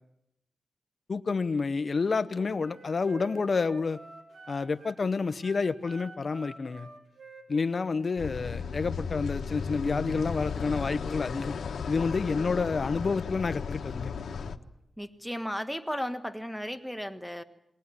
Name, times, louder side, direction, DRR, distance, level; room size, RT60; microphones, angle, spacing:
voice 1, 1.1-4.0 4.5-6.9 7.5-11.6 11.9-14.1, left 4 dB, 45° left, 12 dB, 0.9 m, -29 dB
Wind instrument woodwind instrument, 1.9-5.0 5.4-8.8, right 2 dB, 70° right, 4.4 m, -49 dB
sound 1, 8.2-14.6, left 5 dB, 85° left, 1.2 m, -35 dB
voice 2, 15.0-17.4, equal, ahead, 7 dB, 1.5 m, -35 dB
22.0 x 19.0 x 9.8 m, 0.84 s
wide cardioid pair, 110°, 0 cm